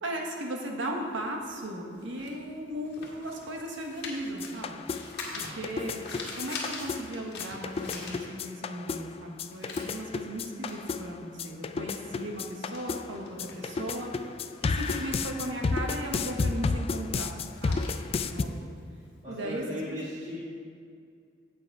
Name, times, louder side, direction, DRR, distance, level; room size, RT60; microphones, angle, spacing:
voice 1, 0.0-4.8 5.4-14.1 14.6-17.4 17.6-18.7 19.3-20.1, right 1 dB, 70° right, 1 dB, 1.2 m, -37 dB
sound 1, 1.0-8.7 9.1-19.1, left 3 dB, 60° left, 1.7 m, -44 dB
sound 2, 4.4-18.4, left 4 dB, 30° left, 0.3 m, -33 dB
voice 2, 5.3-5.7 17.0-17.3 18.4-18.7 19.2-20.4, equal, 40° right, -9 dB, 1.9 m, -40 dB
7.8 x 7.7 x 4.8 m, 2.2 s
head